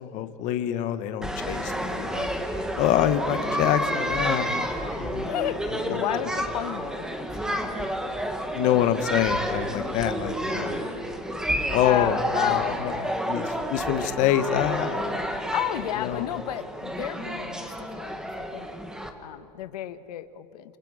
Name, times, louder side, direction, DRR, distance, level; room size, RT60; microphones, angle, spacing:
voice 1, 0.0-4.6 5.0-5.3 5.9-6.0 8.5-10.8 11.7-12.2 12.5-12.9 13.3-13.4 13.7-15.1 16.0-16.2, left 10 dB, 40° left, 10 dB, 1.2 m, -26 dB
sound 1, 1.2-19.1, equal, 5° right, 1.4 m, -30 dB
voice 2, 5.2-7.6 10.5-10.8 11.8-13.2 15.5-18.7 19.2-20.8, left 13 dB, 80° left, 12 dB, 1.2 m, -32 dB
28.5 x 27.0 x 5.0 m, 2.7 s
supercardioid pair, 150°, 20 cm